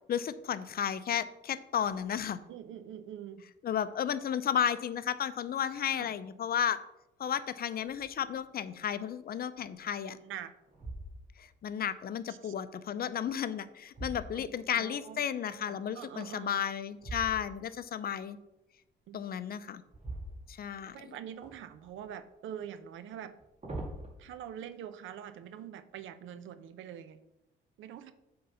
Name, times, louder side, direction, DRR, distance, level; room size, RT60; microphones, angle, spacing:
voice 1, 0.1-2.4 3.6-6.8 7.2-10.2 11.4-18.4 19.1-19.8 20.5-21.1, left 9 dB, 50° left, 14 dB, 0.5 m, -33 dB
voice 2, 2.5-3.4 5.9-6.1 10.1-10.5 12.3-12.5 14.3-15.2 15.6-16.6 19.1-19.3 20.9-23.3 24.2-27.2 27.8-28.1, right 9 dB, 80° right, 12 dB, 0.6 m, -45 dB
sound 1, 7.9-8.3 8.8-8.9 9.6-10.1 10.7-11.6 13.2-14.9 17.0-17.8 19.9-21.0 21.4-22.2 23.2-24.1, right 1 dB, 35° right, 2.0 m, -44 dB
7.8 x 3.8 x 5.7 m, 0.93 s
cardioid pair, 90°, 20 cm